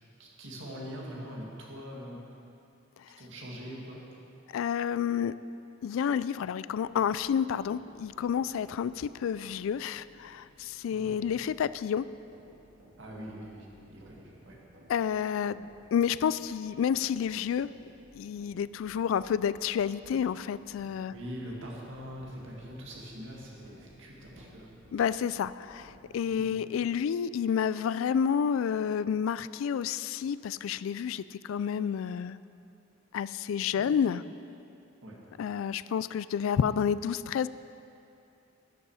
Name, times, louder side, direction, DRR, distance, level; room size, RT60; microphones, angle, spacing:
voice 1, 0.2-2.2 3.2-4.0 10.9-11.1 13.0-14.6 21.1-24.7 26.3-26.6 33.7-33.9 35.0-35.2, equal, 65° right, -3 dB, 2.1 m, -43 dB
voice 2, 4.5-5.3 5.8-12.1 14.9-17.7 18.1-21.1 24.9-32.4 33.1-34.2 35.4-37.5, left 7 dB, 75° left, 17 dB, 0.3 m, -30 dB
sound 1, 6.8-26.2, equal, 80° right, 1.8 m, -58 dB
12.0 x 9.7 x 4.8 m, 2.7 s
head